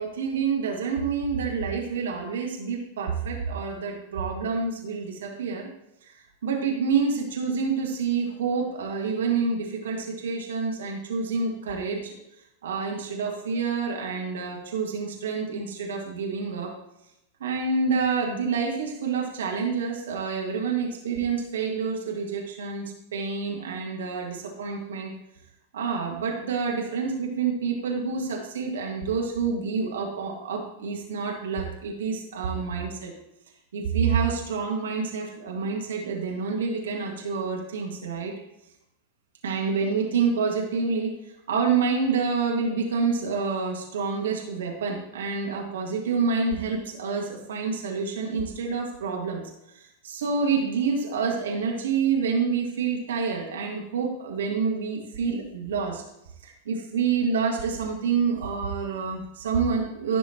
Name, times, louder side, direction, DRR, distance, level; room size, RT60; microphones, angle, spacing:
voice 1, 0.0-5.7 6.4-12.2 12.6-16.7 17.4-25.1 25.7-33.1 33.7-38.3 39.4-41.2 41.5-49.4 50.0-56.0 56.4-60.2, right 5 dB, 65° right, -1 dB, 1.7 m, -28 dB
15.0 x 5.5 x 2.9 m, 0.86 s
figure-of-eight pair, 90°, 0 cm